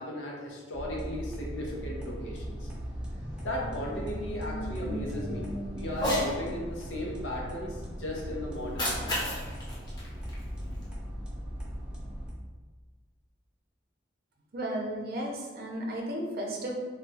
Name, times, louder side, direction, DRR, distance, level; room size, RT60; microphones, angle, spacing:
voice 1, 0.0-2.7 3.4-9.2, left 1 dB, 85° left, -2 dB, 0.7 m, -36 dB
sound 1, 0.7-12.3, equal, 5° right, 0.4 m, -38 dB
Cat, 5.9-6.3 8.5-10.9, equal, 25° left, 0.8 m, -32 dB
voice 2, 14.5-16.7, right 1 dB, 55° right, 0 dB, 0.6 m, -34 dB
2.3 x 2.3 x 3.9 m, 1.4 s
head